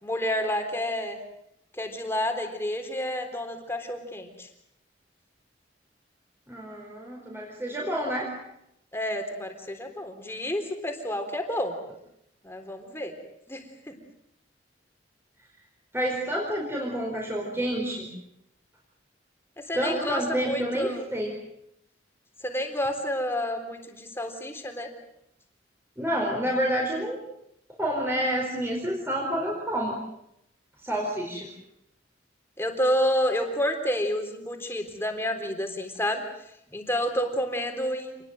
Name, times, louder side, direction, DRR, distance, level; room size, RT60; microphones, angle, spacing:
voice 1, 0.0-1.2 1.8-4.5 8.9-11.7 12.4-13.1 13.5-13.9 19.6-21.1 22.4-24.9 32.6-36.2 36.7-38.2, equal, 15° left, 5 dB, 3.7 m, -29 dB
voice 2, 6.5-8.3 15.9-18.1 19.7-21.3 26.0-27.2 27.8-29.9 30.8-31.5, equal, 15° right, -1 dB, 4.6 m, -28 dB
27.0 x 20.5 x 7.9 m, 0.79 s
head